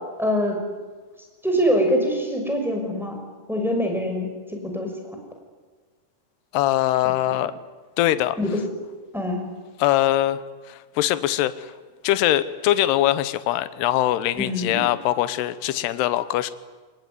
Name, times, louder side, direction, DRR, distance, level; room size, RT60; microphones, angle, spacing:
voice 1, 0.2-0.6 1.4-3.2 3.5-5.1 7.0-7.4 8.4-8.7 9.1-9.4 14.3-14.8, equal, ahead, 2 dB, 5.3 m, -24 dB
voice 2, 6.5-7.5 8.0-8.4 9.8-10.4 10.7-11.7 12.0-16.5, left 14 dB, 75° left, 14 dB, 2.5 m, -22 dB
26.5 x 21.0 x 9.7 m, 1.4 s
omnidirectional pair, 5.8 m